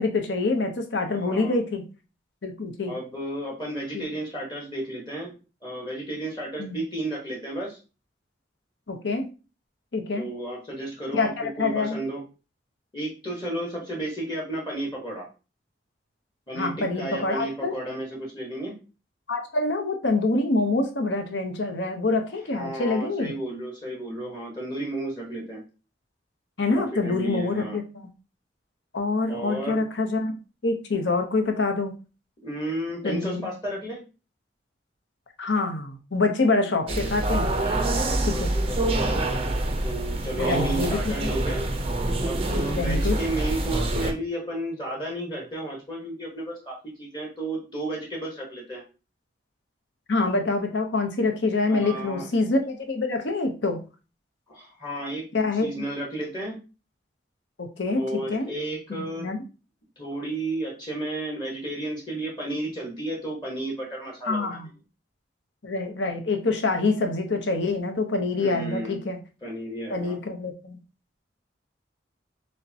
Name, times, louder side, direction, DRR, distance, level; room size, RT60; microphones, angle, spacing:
voice 1, 0.0-1.8 2.4-2.9 3.9-4.0 6.6-6.8 8.9-9.3 9.9-10.3 11.1-11.3 11.6-12.0 16.6-17.7 19.3-23.3 26.6-28.1 28.9-30.4 30.6-31.9 33.0-33.5 35.4-37.5 38.2-38.5 40.4-41.3 42.8-43.2 50.1-53.8 55.3-55.7 57.6-58.5 58.9-59.4 64.3-64.7 65.6-69.2 69.9-70.8, left 3 dB, 70° left, 4 dB, 0.8 m, -26 dB
voice 2, 1.1-1.6 2.8-5.3 5.6-7.8 10.1-12.2 12.9-15.3 16.5-18.7 22.5-25.6 26.7-27.8 29.3-29.8 32.4-34.0 37.6-39.3 39.8-41.7 42.2-48.8 51.6-52.3 54.5-55.3 55.5-56.6 57.9-59.3 60.0-64.7 68.4-69.0 69.4-70.2, right 1 dB, 25° left, -2 dB, 1.1 m, -33 dB
sound 1, 36.9-44.1, right 2 dB, 30° right, 0.4 m, -26 dB
6.4 x 2.2 x 2.7 m, 0.33 s
head